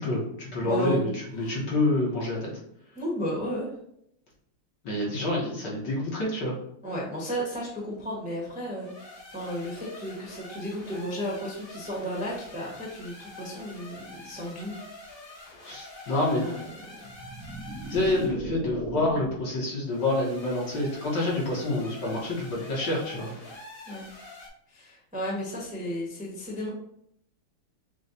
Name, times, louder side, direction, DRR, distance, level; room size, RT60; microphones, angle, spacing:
voice 1, 0.0-2.5 4.8-6.6 15.6-16.4 17.9-23.3, left 2 dB, 60° left, -4 dB, 1.5 m, -27 dB
voice 2, 0.6-1.0 1.4-1.6 2.9-3.7 6.8-14.8 16.4-16.7 23.9-24.0 24.7-26.7, equal, 5° right, -5 dB, 0.8 m, -33 dB
sound 1, 8.7-18.4 19.8-24.5, left 2 dB, 35° left, 0.9 m, -46 dB
sound 2, 17.0-19.6, right 2 dB, 55° right, 1.1 m, -37 dB
6.5 x 2.3 x 2.7 m, 0.74 s
omnidirectional pair, 2.4 m